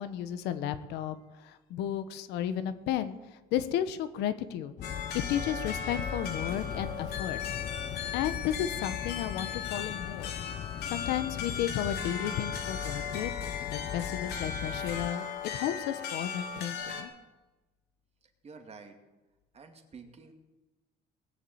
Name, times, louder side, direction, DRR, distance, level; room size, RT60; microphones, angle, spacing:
voice 1, 0.0-3.2 3.5-4.7 5.3-7.6 8.1-10.3 10.9-13.3 13.7-15.3 15.5-17.1, left 10 dB, 90° left, 11 dB, 1.2 m, -33 dB
Wuppertal-Clock, 4.8-17.0, left 7 dB, 75° left, 2.7 m, -37 dB
sound 1, 4.8-15.1, left 10 dB, 45° left, 0.4 m, -40 dB
voice 2, 18.2-19.0 19.5-20.3, right 5 dB, 40° right, 5 dB, 2.4 m, -50 dB
19.5 x 7.4 x 8.7 m, 1.1 s
cardioid pair, 110°, 17 cm